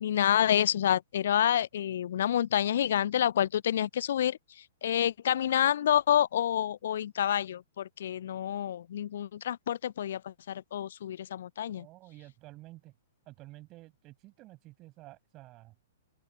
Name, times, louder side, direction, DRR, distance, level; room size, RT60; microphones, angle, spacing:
voice 1, 0.0-4.4 4.8-11.9, left 10 dB, 55° left, 0.6 m, -28 dB
voice 2, 11.7-12.9 13.3-15.9, right 18 dB, 30° right, 6.0 m, -51 dB
open air
figure-of-eight pair, 110°, 0 cm